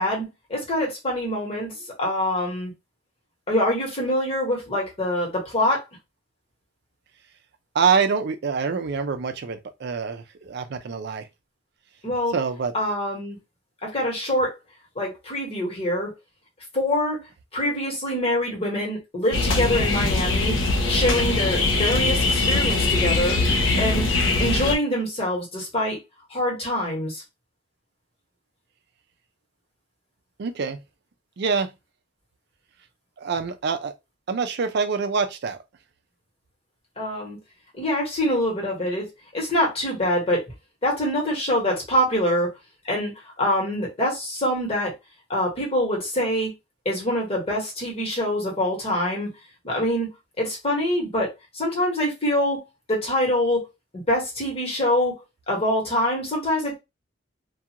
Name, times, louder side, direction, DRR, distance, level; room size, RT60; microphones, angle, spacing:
voice 1, 0.0-2.7 3.5-5.8 12.0-12.3 12.7-13.4 13.8-14.5 14.9-16.1 16.7-17.2 17.5-20.6 20.9-23.4 23.8-24.1 24.4-26.0 26.3-27.2 37.0-37.4 37.8-40.4 40.8-42.5 42.8-43.1 43.4-44.9 45.3-46.5 46.8-49.3 49.6-50.1 50.4-52.6 52.9-53.7 53.9-55.1 55.5-56.8, left 1 dB, 30° left, 1.2 m, -25 dB
voice 2, 7.7-11.3 12.3-12.7 30.4-30.8 31.4-31.7 33.2-33.9 34.3-35.6, right 5 dB, 55° right, 0.4 m, -25 dB
sound 1, 19.3-24.8, left 3 dB, 70° left, 0.5 m, -22 dB
2.4 x 2.3 x 2.8 m
head